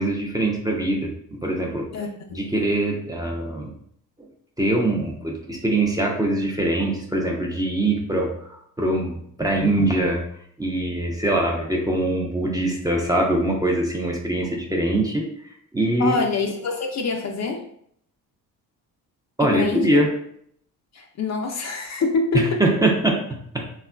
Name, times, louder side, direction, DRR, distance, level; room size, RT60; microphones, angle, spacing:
voice 1, 0.0-1.9 2.3-3.7 4.6-10.2 10.6-15.3 15.7-16.2 19.4-20.1 22.3-23.2 23.5-23.7, right 1 dB, 10° right, -1 dB, 0.5 m, -23 dB
voice 2, 1.9-2.4 16.0-17.6 19.4-20.0 20.9-22.6, left 4 dB, 40° left, 3 dB, 0.5 m, -25 dB
3.5 x 2.3 x 2.2 m, 0.67 s
supercardioid pair, 65°, 43 cm